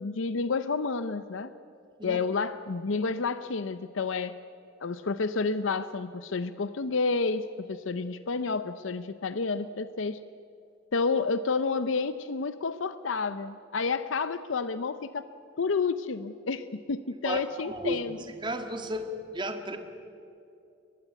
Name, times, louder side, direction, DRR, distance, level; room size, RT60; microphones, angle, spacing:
voice 1, 0.0-1.5 2.0-4.4 4.8-10.2 10.9-15.2 15.6-18.2, left 4 dB, 80° left, 13 dB, 0.6 m, -30 dB
voice 2, 17.2-18.0 18.4-19.8, right 1 dB, 25° right, 6 dB, 1.8 m, -33 dB
22.5 x 21.0 x 8.3 m, 2.7 s
head